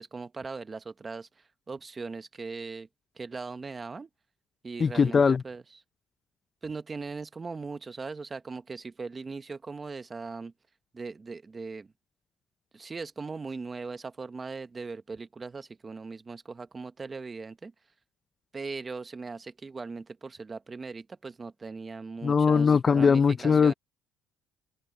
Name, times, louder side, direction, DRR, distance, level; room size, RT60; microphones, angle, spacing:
voice 1, 0.0-2.9 3.1-4.1 4.6-5.6 6.6-10.5 10.9-11.9 12.7-17.7 18.5-23.7, right 4 dB, 20° right, 1.0 m, -39 dB
voice 2, 4.8-5.4 22.2-23.7, left 5 dB, 25° left, 0.5 m, -21 dB
cardioid pair, 145°, 0 cm